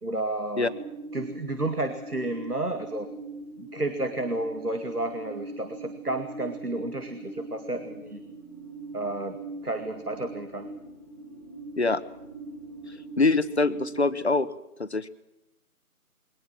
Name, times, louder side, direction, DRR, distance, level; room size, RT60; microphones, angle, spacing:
voice 1, 0.0-0.7 1.1-3.1 3.6-8.2 8.9-9.4 9.6-10.7, right 2 dB, 90° right, 7 dB, 2.5 m, -31 dB
sound 1, 0.5-14.4, right 3 dB, 10° left, 2.7 m, -41 dB
voice 2, 13.2-14.5 14.8-15.1, left 3 dB, 45° left, 14 dB, 1.2 m, -24 dB
22.5 x 19.0 x 7.5 m, 0.91 s
figure-of-eight pair, 165°, 44 cm